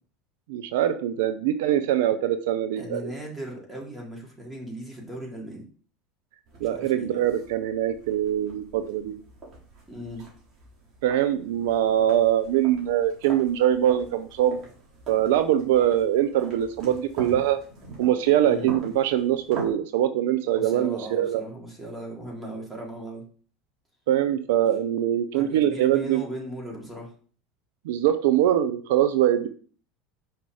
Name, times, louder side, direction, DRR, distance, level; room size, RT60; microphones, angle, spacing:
voice 1, 0.5-3.0 6.6-9.2 11.0-14.6 15.1-17.6 18.0-21.4 24.1-26.2 27.9-29.5, right 11 dB, 70° right, 10 dB, 0.6 m, -23 dB
voice 2, 2.8-5.7 6.6-7.2 9.9-10.3 18.4-18.7 20.5-23.2 25.3-27.1, right 1 dB, 10° right, -2 dB, 3.6 m, -37 dB
sound 1, 6.5-19.7, right 2 dB, 40° right, 3.5 m, -44 dB
5.8 x 5.4 x 4.9 m, 0.43 s
hypercardioid pair, 80°, 0 cm